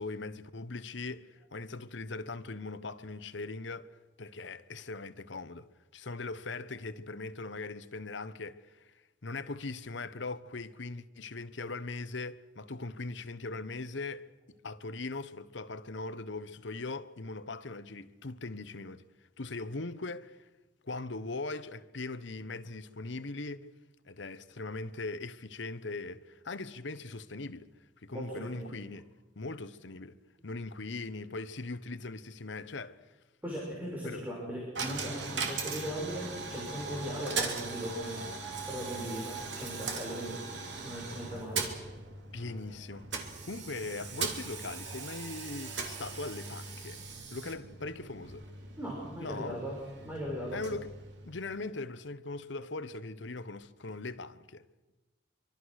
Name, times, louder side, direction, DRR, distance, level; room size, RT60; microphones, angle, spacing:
voice 1, 0.0-5.7 5.9-8.9 9.2-14.3 14.6-19.1 19.4-20.5 20.8-23.7 24.0-27.7 28.0-29.1 29.4-30.2 30.4-33.0 34.0-34.2 42.3-43.1 43.4-47.0 47.3-48.5 49.2-49.6 50.5-50.9 51.2-54.6, left 3 dB, 70° left, 1.0 m, -40 dB
voice 2, 28.1-28.7 33.4-38.3 38.6-40.4 40.8-41.7 48.8-49.8 50.0-50.6, equal, 10° right, 6.3 m, -38 dB
Coin (dropping), 34.7-51.7, right 4 dB, 70° right, 2.9 m, -39 dB
26.0 x 24.0 x 6.5 m
head